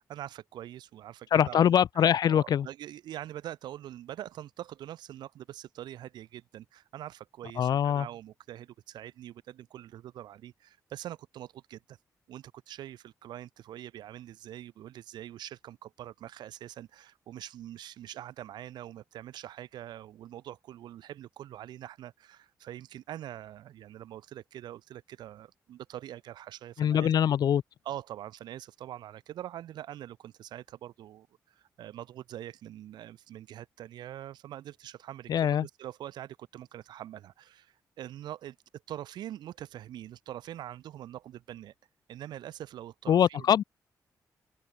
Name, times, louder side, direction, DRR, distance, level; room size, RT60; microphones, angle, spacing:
voice 1, 0.1-12.0 12.3-27.1 27.9-38.6 38.9-41.7 42.1-43.5, right 12 dB, 85° right, 3.7 m, -44 dB
voice 2, 1.3-2.7 7.6-8.1 26.8-27.6 35.3-35.7 43.1-43.6, left 9 dB, 70° left, 0.5 m, -23 dB
open air
cardioid pair, 65°, 7 cm